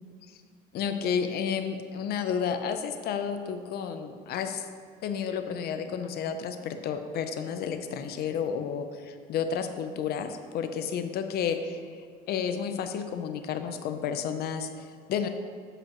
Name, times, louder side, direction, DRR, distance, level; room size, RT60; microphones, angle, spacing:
voice 1, 0.7-4.7 5.0-11.8 12.3-15.3, left 7 dB, 70° left, 8 dB, 0.7 m, -31 dB
13.5 x 5.0 x 3.0 m, 2.2 s
cardioid pair, 110°, 17 cm